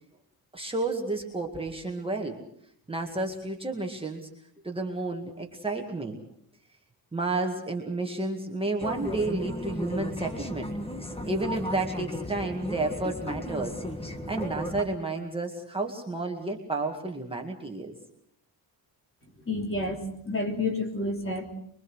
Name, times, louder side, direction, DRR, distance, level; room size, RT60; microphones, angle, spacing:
voice 1, 0.5-2.4 2.9-4.3 4.6-6.2 7.1-10.7 11.2-17.9, right 2 dB, 10° right, 1 dB, 2.0 m, -31 dB
sound 1, 8.8-14.8, left 1 dB, 15° left, 1.7 m, -35 dB
voice 2, 19.5-21.5, left 2 dB, 30° left, 2 dB, 3.5 m, -30 dB
24.5 x 23.5 x 6.3 m, 0.70 s
wide cardioid pair, 180°, 44 cm